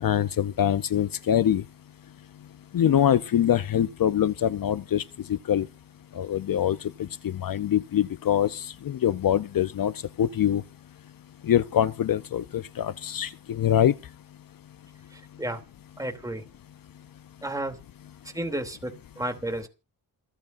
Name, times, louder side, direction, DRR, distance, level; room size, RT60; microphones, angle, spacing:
voice 1, 0.0-1.6 2.7-5.0 5.5-5.7 6.2-6.8 7.2-9.9 10.2-10.6 11.4-13.9, left 10 dB, 60° left, 0.7 m, -24 dB
voice 2, 15.1-15.6 16.0-16.4 17.4-17.8 18.3-19.7, right 1 dB, 10° right, 3.0 m, -32 dB
28.5 x 9.6 x 2.6 m
wide cardioid pair, 120°, 38 cm